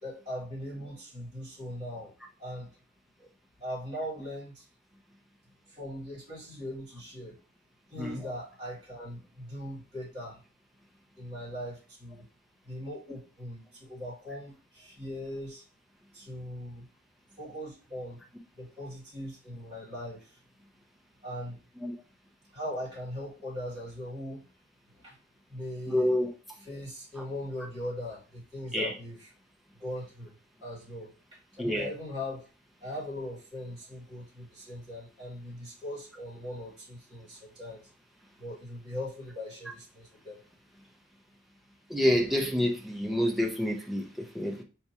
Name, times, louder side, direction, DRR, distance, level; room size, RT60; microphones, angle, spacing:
voice 1, 0.0-2.8 3.2-3.3 3.6-4.7 5.7-7.4 7.9-10.4 11.2-12.3 12.6-15.6 16.1-16.9 17.4-18.2 18.5-20.4 21.2-21.6 22.5-24.5 24.9-25.2 25.5-26.1 26.6-29.3 29.7-32.4 32.8-37.9 38.4-40.4, left 1 dB, 20° right, 2.3 m, -40 dB
voice 2, 25.9-26.3 28.7-28.9 31.6-31.9 41.9-44.6, left 1 dB, ahead, 0.7 m, -28 dB
4.6 x 3.5 x 2.9 m
head